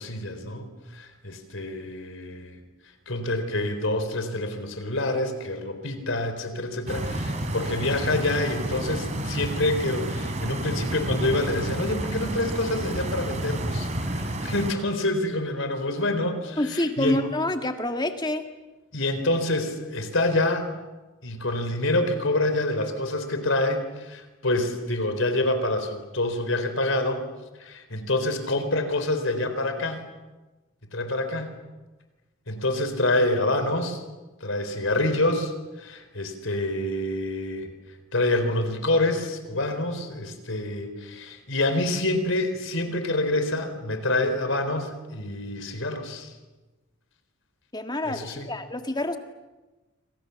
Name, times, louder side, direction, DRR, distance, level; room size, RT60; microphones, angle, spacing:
voice 1, 0.0-2.6 3.1-13.9 14.1-17.2 18.9-20.7 21.2-27.2 27.6-30.0 30.9-31.5 32.5-34.0 34.4-35.5 35.8-37.7 38.1-46.3 48.0-48.5, left 2 dB, 70° left, 8 dB, 4.1 m, -27 dB
Stream, 6.9-14.7, right 1 dB, 35° right, 3.2 m, -30 dB
voice 2, 16.6-18.4 47.7-49.2, left 1 dB, 20° left, 6 dB, 1.9 m, -27 dB
28.0 x 26.0 x 7.1 m, 1.2 s
head